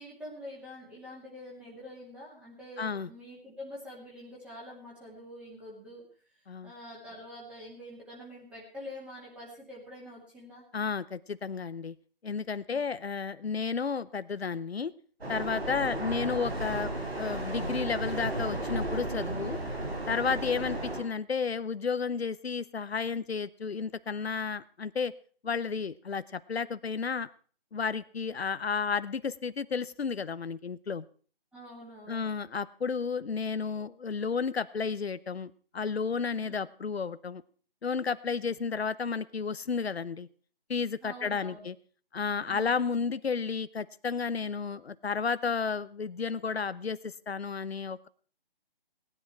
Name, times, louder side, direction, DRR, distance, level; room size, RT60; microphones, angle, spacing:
voice 1, 0.0-6.1 6.6-10.6 12.7-12.8 31.5-32.3 36.3-36.6 41.0-41.7 42.4-42.7, left 1 dB, 5° right, -5 dB, 2.3 m, -46 dB
voice 2, 2.8-3.1 6.5-6.7 10.7-11.9 12.2-14.9 15.3-19.6 20.1-25.1 25.4-27.3 27.7-31.0 32.1-37.4 37.8-40.3 40.7-41.7 42.1-48.1, left 5 dB, 85° left, 16 dB, 0.8 m, -32 dB
sound 1, 15.2-21.0, right 1 dB, 90° right, 4.4 m, -34 dB
18.0 x 10.0 x 4.5 m, 0.42 s
figure-of-eight pair, 160°, 30 cm